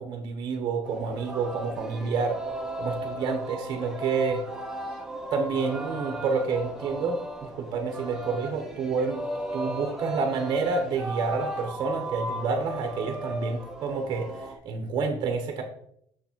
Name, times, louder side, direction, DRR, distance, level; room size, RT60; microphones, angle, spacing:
voice 1, 0.0-2.4 2.8-4.5 5.3-9.2 9.5-15.6, right 4 dB, 50° right, 4 dB, 0.9 m, -29 dB
Singing, 0.8-14.6, right 1 dB, 5° right, 1.1 m, -36 dB
6.4 x 3.9 x 4.5 m, 0.69 s
cardioid pair, 110°, 9 cm